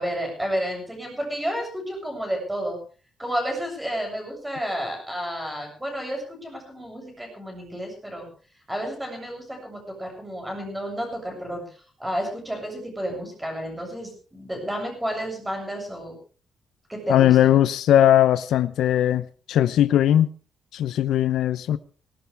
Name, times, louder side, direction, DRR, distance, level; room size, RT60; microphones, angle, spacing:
voice 1, 0.0-2.8 3.2-8.3 8.7-11.6 12.0-16.1 16.9-17.6, equal, 5° right, 7.5 m, -31 dB
voice 2, 17.1-20.3 20.7-21.8, left 11 dB, 80° left, 0.6 m, -19 dB
18.5 x 18.5 x 3.5 m
cardioid pair, 155°, 0 cm